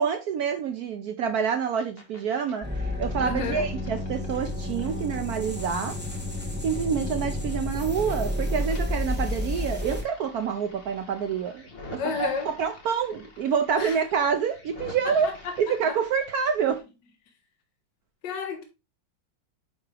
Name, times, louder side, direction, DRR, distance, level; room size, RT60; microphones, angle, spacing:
voice 1, 0.0-6.0 6.6-15.3 15.6-16.8, right 7 dB, 70° right, 0.9 m, -27 dB
sound 1, 1.7-2.2 2.5-7.6 7.8-16.8, left 2 dB, 35° left, 1.3 m, -49 dB
sound 2, 2.6-10.0, left 1 dB, 5° right, 1.7 m, -31 dB
voice 2, 3.2-3.7 12.0-12.5 13.8-14.0 15.0-16.0 18.2-18.6, left 5 dB, 65° left, 1.7 m, -32 dB
9.5 x 3.5 x 3.3 m
omnidirectional pair, 2.1 m